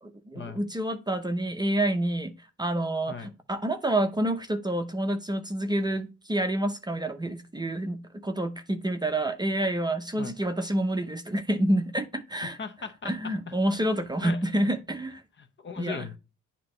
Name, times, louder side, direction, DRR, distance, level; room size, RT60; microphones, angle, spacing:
voice 1, 0.0-2.3 2.6-12.6 13.0-15.2 15.8-16.1, right 1 dB, 15° right, 0.7 m, -28 dB
voice 2, 12.6-13.3 14.2-14.7 15.4-16.2, left 5 dB, 40° left, 0.9 m, -38 dB
8.7 x 3.0 x 3.7 m
cardioid pair, 90°, 30 cm